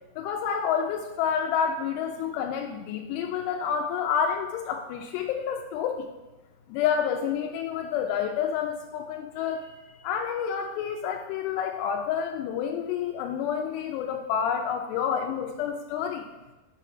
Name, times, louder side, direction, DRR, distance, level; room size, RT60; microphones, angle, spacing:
voice 1, 0.2-6.1 6.7-16.3, left 7 dB, 90° left, 3 dB, 2.7 m, -29 dB
5.8 x 5.0 x 5.7 m, 1.1 s
omnidirectional pair, 4.7 m